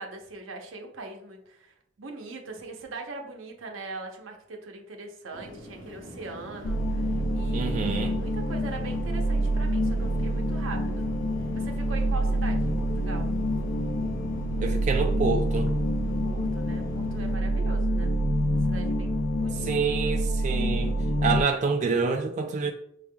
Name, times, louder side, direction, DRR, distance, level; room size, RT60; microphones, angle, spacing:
voice 1, 0.0-11.1 11.5-13.3 16.0-18.1 18.5-20.1 22.6-22.7, right 3 dB, 85° right, 0.8 m, -41 dB
sound 1, 5.3-17.4, equal, 25° left, 1.7 m, -44 dB
sound 2, 6.6-21.4, equal, 85° left, 0.5 m, -27 dB
voice 2, 7.5-8.1 14.6-15.7 19.6-20.9 21.2-22.7, right 4 dB, 40° right, 0.3 m, -27 dB
5.7 x 3.4 x 2.2 m
head